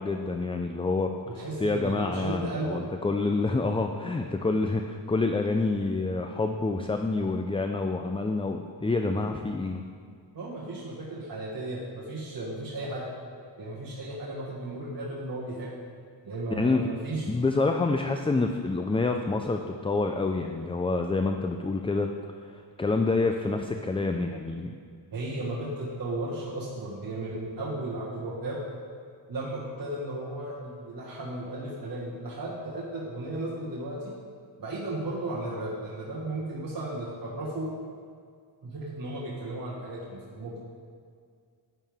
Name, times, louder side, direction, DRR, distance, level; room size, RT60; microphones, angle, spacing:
voice 1, 0.0-9.8 16.6-16.9 17.3-22.1 22.4-24.7, left 3 dB, 15° left, 5 dB, 0.4 m, -27 dB
voice 2, 1.3-2.9 10.3-13.1 13.6-15.7 16.2-17.3 25.1-28.6 29.3-34.1 34.6-37.7 38.6-40.6, right 2 dB, 50° right, -6 dB, 1.6 m, -35 dB
11.0 x 9.2 x 3.5 m, 2.2 s
wide cardioid pair, 100°, 43 cm